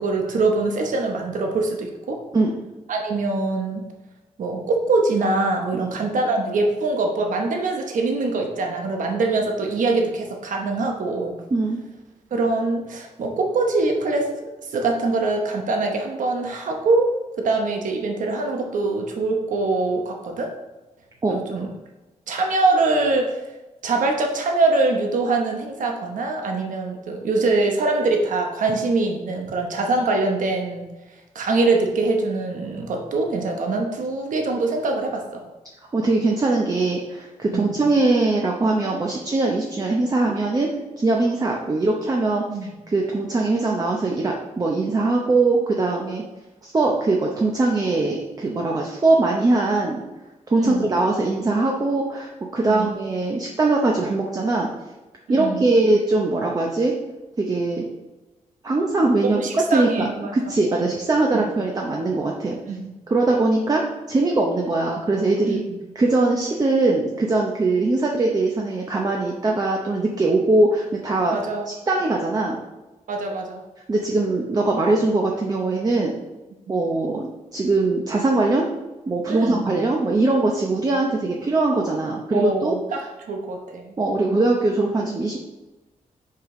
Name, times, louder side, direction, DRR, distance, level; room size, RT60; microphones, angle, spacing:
voice 1, 0.0-2.2 2.9-3.9 4.4-11.4 12.3-14.3 14.7-20.5 21.3-21.7 22.3-23.4 23.8-30.9 31.3-35.5 37.5-37.8 42.5-42.8 50.5-50.9 52.6-52.9 55.3-55.7 59.2-60.3 60.7-60.9 61.3-61.4 62.7-63.0 65.5-65.6 71.3-71.7 73.1-73.6 76.7-76.8 79.3-79.7 82.3-83.0 83.3-83.9, right 3 dB, 80° right, 2 dB, 0.9 m, -23 dB
voice 2, 35.9-40.7 41.0-42.4 42.9-46.2 46.6-50.0 50.5-54.7 55.3-56.9 57.4-57.8 58.6-60.1 60.3-62.6 63.1-65.6 66.0-71.4 71.7-72.6 73.9-76.1 76.7-78.7 79.1-82.8 84.0-85.4, right 2 dB, 30° right, 0 dB, 0.7 m, -21 dB
5.6 x 5.1 x 3.8 m, 1.1 s
wide cardioid pair, 115°, 13 cm